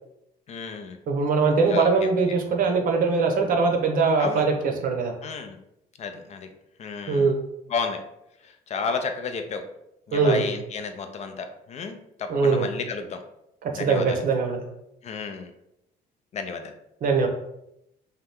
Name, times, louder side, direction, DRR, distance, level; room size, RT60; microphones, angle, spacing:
voice 1, 0.5-1.0 1.7-2.1 4.2-4.5 5.2-5.6 6.0-6.5 6.8-7.3 7.7-8.0 8.4-9.6 10.1-13.2 13.7-14.2 15.0-15.5 16.3-16.7, left 5 dB, 40° left, 6 dB, 0.4 m, -32 dB
voice 2, 1.1-5.1 7.1-7.3 10.1-10.5 12.3-12.7 13.6-14.6 17.0-17.3, right 4 dB, 55° right, 3 dB, 0.7 m, -22 dB
2.8 x 2.2 x 3.4 m, 0.81 s
cardioid pair, 110°, 17 cm